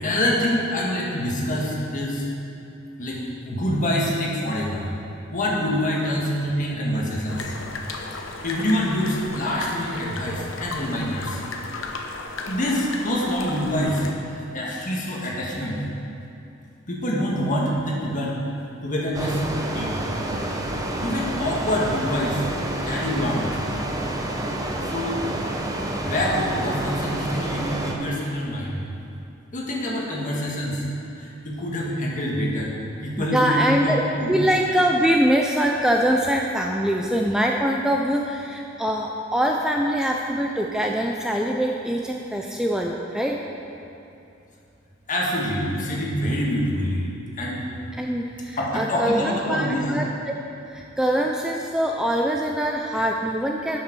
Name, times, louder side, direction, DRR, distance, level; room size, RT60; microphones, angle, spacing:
voice 1, 0.0-2.2 3.0-4.8 5.3-7.5 8.1-11.4 12.5-15.8 16.9-18.4 18.8-20.0 21.0-22.5 22.8-23.5 24.9-25.2 26.0-28.8 29.5-30.9 31.2-34.3 45.1-47.1 47.4-47.6 48.6-49.9, equal, 40° left, -3 dB, 1.7 m, -26 dB
sound 1, 7.3-14.1, left 3 dB, 70° left, 0.8 m, -35 dB
sound 2, 19.1-27.9, right 1 dB, 20° right, 0.8 m, -28 dB
voice 2, 33.2-34.0 34.3-43.4 48.0-50.4 50.7-53.8, equal, 5° right, 0 dB, 0.4 m, -23 dB
8.6 x 6.7 x 6.2 m, 2.7 s
head